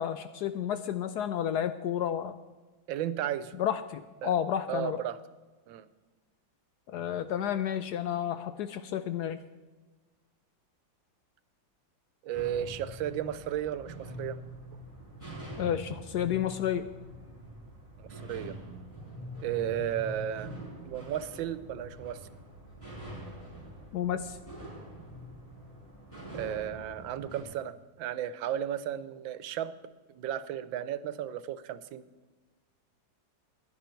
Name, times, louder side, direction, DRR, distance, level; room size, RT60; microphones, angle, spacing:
voice 1, 0.0-2.3 3.5-5.0 6.9-9.4 15.6-16.9 23.9-24.4, left 9 dB, 70° left, 11 dB, 1.0 m, -31 dB
voice 2, 2.9-3.5 4.2-4.3 4.7-5.2 5.7-5.8 12.2-14.4 18.0-18.5 19.4-20.5 20.8-22.2 26.3-29.7 30.1-32.0, right 10 dB, 80° right, 14 dB, 1.4 m, -34 dB
sound 1, 12.3-27.4, equal, 5° left, 4.3 m, -45 dB
15.5 x 10.5 x 4.5 m, 1.3 s
omnidirectional pair, 2.1 m